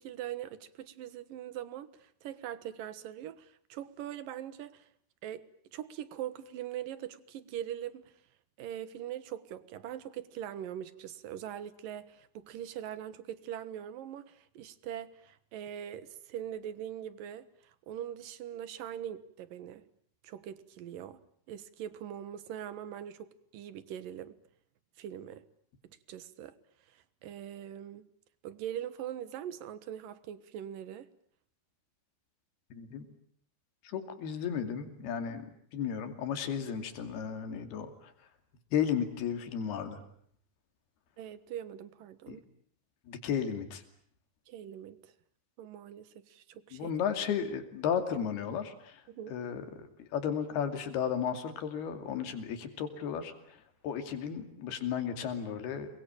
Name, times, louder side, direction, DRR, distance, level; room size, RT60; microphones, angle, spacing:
voice 1, 0.0-4.9 5.2-8.1 8.6-19.8 20.2-21.2 21.5-24.3 25.0-25.4 25.8-26.5 26.9-28.1 28.4-31.1 41.2-42.4 44.5-45.1 45.6-46.9 49.1-49.4, right 10 dB, 65° right, 2.9 m, -42 dB
voice 2, 32.7-33.1 33.8-35.5 35.7-38.1 38.7-40.0 42.3-42.4 43.1-43.8 46.7-49.0 49.3-55.9, left 8 dB, 80° left, 4.5 m, -34 dB
28.5 x 22.5 x 8.8 m
omnidirectional pair, 4.5 m